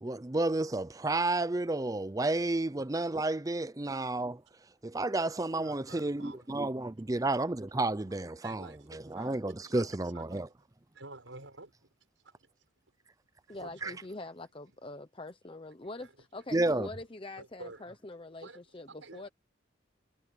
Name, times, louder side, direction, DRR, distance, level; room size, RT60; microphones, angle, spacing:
voice 1, 0.0-4.4 4.8-10.5 13.8-13.9 16.5-16.9, right 2 dB, 20° right, 0.5 m, -31 dB
voice 2, 5.6-6.5 8.1-8.2 8.4-9.4 9.6-10.4 10.9-11.7 13.5-14.1 16.0-16.1 17.4-17.8 18.4-18.6 18.9-19.3, right 2 dB, 85° right, 6.8 m, -49 dB
voice 3, 13.5-19.3, left 2 dB, 25° left, 0.9 m, -44 dB
head